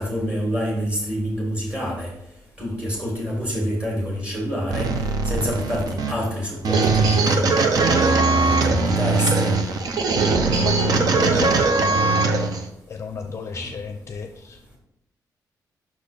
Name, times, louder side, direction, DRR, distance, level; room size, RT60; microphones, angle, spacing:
voice 1, 0.0-2.1 2.6-7.9 8.3-9.7 13.5-13.7, equal, 15° right, -3 dB, 2.2 m, -27 dB
sound 1, 4.7-12.7, right 3 dB, 60° right, 0.7 m, -20 dB
voice 2, 10.6-12.5 12.9-14.8, left 5 dB, 40° left, 5 dB, 0.5 m, -32 dB
6.0 x 4.2 x 5.0 m, 0.82 s
wide cardioid pair, 165°, 7 cm